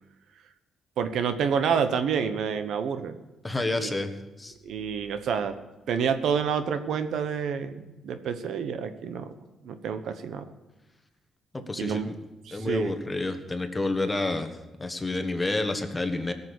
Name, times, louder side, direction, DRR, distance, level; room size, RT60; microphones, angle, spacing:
voice 1, 1.0-3.2 3.7-3.9 4.6-5.5 5.9-9.3 9.6-10.5 11.8-12.1 12.5-13.0, right 6 dB, 70° right, 9 dB, 1.1 m, -28 dB
voice 2, 3.4-4.1 4.4-4.5 11.5-12.1 12.5-16.3, left 2 dB, 15° left, 6 dB, 1.5 m, -29 dB
17.0 x 7.0 x 8.4 m, 1.1 s
cardioid pair, 90°, 0 cm